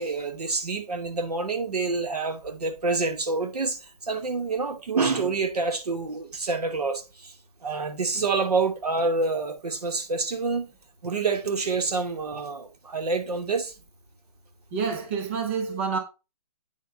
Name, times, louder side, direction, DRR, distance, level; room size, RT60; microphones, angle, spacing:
voice 1, 0.0-7.3 7.6-10.7 11.0-13.7, right 4 dB, 85° right, 2.6 m, -27 dB
voice 2, 14.7-16.0, right 5 dB, 20° right, 1.0 m, -28 dB
9.1 x 4.6 x 4.6 m
hypercardioid pair, 175°, 19 cm